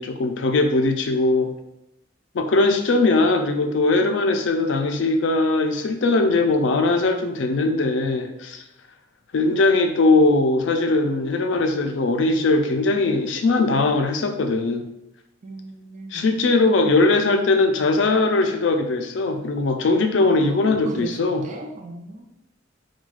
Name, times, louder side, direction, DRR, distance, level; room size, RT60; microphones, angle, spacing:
voice 1, 0.0-1.5 2.3-8.6 9.3-14.8 16.1-21.4, left 3 dB, 75° left, 6 dB, 0.4 m, -20 dB
voice 2, 15.4-16.3 20.2-22.4, right 2 dB, 40° right, 4 dB, 0.4 m, -38 dB
4.6 x 2.2 x 2.4 m, 0.87 s
head